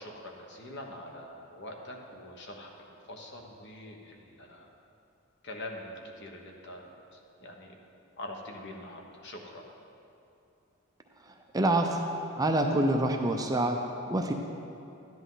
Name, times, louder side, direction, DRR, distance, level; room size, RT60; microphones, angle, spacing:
voice 1, 0.0-4.7 5.4-6.9 7.4-7.7 8.2-9.7, left 1 dB, 50° left, 1 dB, 1.2 m, -44 dB
voice 2, 11.5-12.0 12.4-13.8 14.1-14.3, right 1 dB, 15° right, 3 dB, 0.5 m, -26 dB
12.5 x 10.0 x 3.9 m, 2.7 s
head